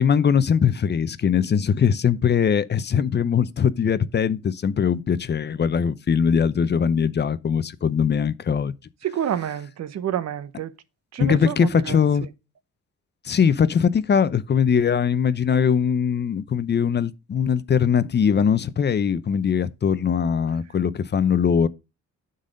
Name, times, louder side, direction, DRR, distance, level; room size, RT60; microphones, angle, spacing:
voice 1, 0.0-8.7 11.2-12.3 13.2-21.7, left 7 dB, 35° left, 0.7 m, -21 dB
voice 2, 9.0-10.7 11.1-12.3, right 10 dB, 60° right, 0.9 m, -29 dB
10.5 x 4.1 x 5.1 m
cardioid pair, 90°, 30 cm